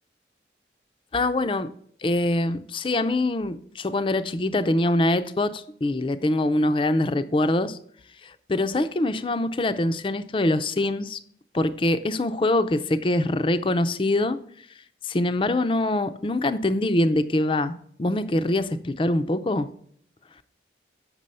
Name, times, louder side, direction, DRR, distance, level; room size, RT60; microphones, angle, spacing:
voice 1, 1.1-1.7 2.0-7.8 8.2-11.2 11.5-14.4 15.0-19.7, left 1 dB, 30° left, 0.4 m, -24 dB
7.5 x 6.1 x 5.4 m
head